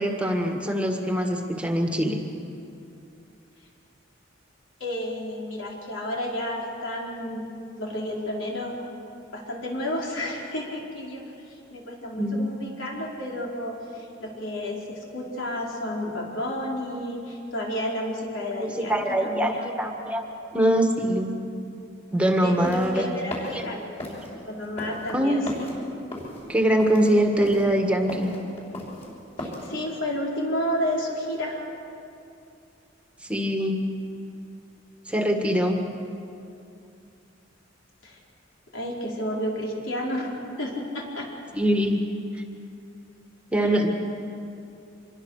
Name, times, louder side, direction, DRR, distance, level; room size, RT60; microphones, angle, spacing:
voice 1, 0.0-2.2 12.2-12.5 18.6-20.2 20.5-21.3 22.1-23.1 23.5-23.6 25.1-25.5 26.5-28.3 33.2-33.8 35.1-35.8 41.5-42.0 43.5-43.9, equal, 5° right, 3 dB, 1.7 m, -23 dB
voice 2, 4.8-7.5 7.8-8.9 9.3-19.6 22.4-24.2 24.4-25.7 29.4-31.6 38.0-38.2 38.7-41.3 43.6-43.8, left 1 dB, 80° left, -2 dB, 4.6 m, -31 dB
sound 1, 22.4-29.7, left 1 dB, 35° left, 6.0 m, -37 dB
25.5 x 22.5 x 6.6 m, 2.6 s
head